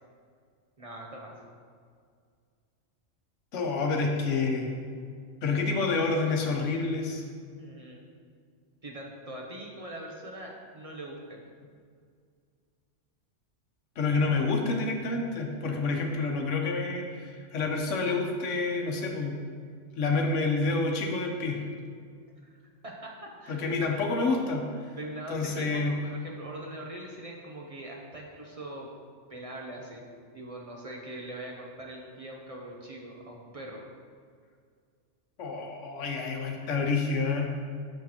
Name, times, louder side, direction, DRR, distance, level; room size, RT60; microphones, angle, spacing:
voice 1, 0.8-1.5 7.6-8.0 8.8-11.4 22.5-22.6 22.8-23.8 25.0-28.9 29.3-30.0 30.3-33.8, right 1 dB, 40° right, -1 dB, 0.5 m, -42 dB
voice 2, 3.5-4.7 5.4-7.2 14.0-19.3 20.0-21.6 23.5-24.7 25.3-25.9 35.4-37.5, left 3 dB, 80° left, 2 dB, 1.2 m, -28 dB
6.3 x 6.3 x 2.9 m, 2.1 s
omnidirectional pair, 1.3 m